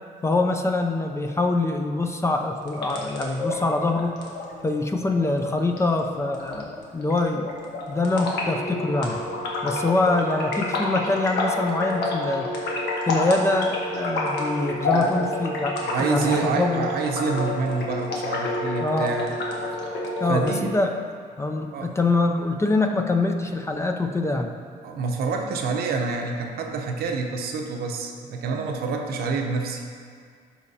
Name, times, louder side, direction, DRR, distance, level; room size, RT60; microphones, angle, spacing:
voice 1, 0.2-4.2 4.6-7.5 7.9-9.2 9.6-12.5 13.1-16.9 18.8-19.1 20.2-20.9 21.4-24.5, left 2 dB, 15° left, 4 dB, 0.5 m, -24 dB
sound 1, 2.6-20.6, left 2 dB, 75° left, 1.3 m, -29 dB
voice 2, 15.8-19.3 20.3-20.7 21.7-21.9 24.8-29.8, right 4 dB, 70° right, 2 dB, 0.8 m, -27 dB
12.0 x 4.3 x 2.8 m, 2.1 s
cardioid pair, 110°, 17 cm